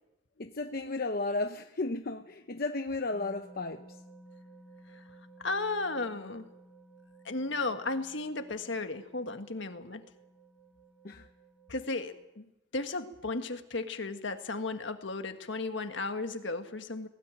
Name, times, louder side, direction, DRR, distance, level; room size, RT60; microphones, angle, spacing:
voice 1, 0.4-4.0 11.0-11.3, left 2 dB, 45° left, 0.8 m, -34 dB
sound 1, 3.1-12.3, right 2 dB, ahead, 4.5 m, -56 dB
voice 2, 5.4-6.5 7.3-10.1 11.7-12.4 12.7-17.1, left 3 dB, 60° left, 1.7 m, -35 dB
20.0 x 18.0 x 9.1 m
head